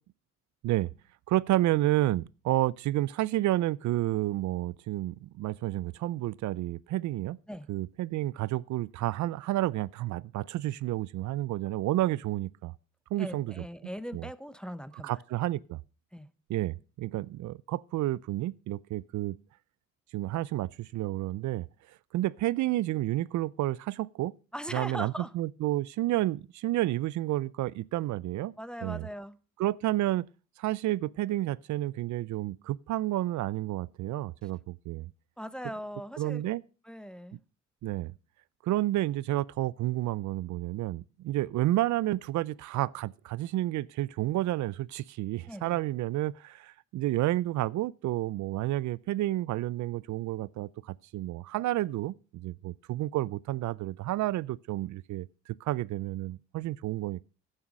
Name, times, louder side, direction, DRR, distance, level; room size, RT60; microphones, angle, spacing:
voice 1, 1.3-7.4 7.7-12.7 13.1-13.5 14.1-14.3 15.0-15.8 16.5-19.4 20.1-21.7 22.1-24.4 24.7-28.5 28.8-29.1 29.6-30.3 30.6-35.1 36.2-36.6 37.8-38.1 38.6-57.2, right 15 dB, 70° right, 0.5 m, -30 dB
voice 2, 13.2-15.2 16.1-16.3 24.5-25.3 28.6-29.4 35.4-36.5 36.8-37.4 45.5-45.8, equal, 5° left, 0.6 m, -40 dB
11.0 x 8.9 x 5.2 m
cardioid pair, 90°, 30 cm